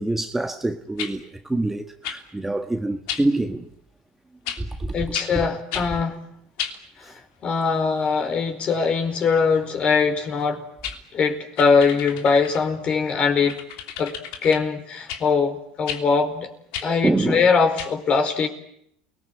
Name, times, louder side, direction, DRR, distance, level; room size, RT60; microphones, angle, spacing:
voice 1, 0.0-3.7 4.6-5.1 5.3-5.5 7.0-7.2 17.0-17.5, right 2 dB, 10° right, 1.5 m, -26 dB
sound 1, 1.0-1.1 2.0-2.2 3.1-3.2 4.5-4.6 5.1-5.3 5.7-5.9 6.6-6.8 10.4-10.5 10.8-11.0 11.6-12.7 13.5-14.6 15.1-15.2 15.9-16.0 16.7-16.9 17.8-17.9, left 9 dB, 70° left, 3.1 m, -32 dB
voice 2, 4.9-6.2 7.4-10.6 11.1-13.6 14.0-14.1 14.4-16.5 16.8-18.5, left 5 dB, 40° left, 4.8 m, -21 dB
28.5 x 20.0 x 9.5 m
supercardioid pair, 100°, 3 cm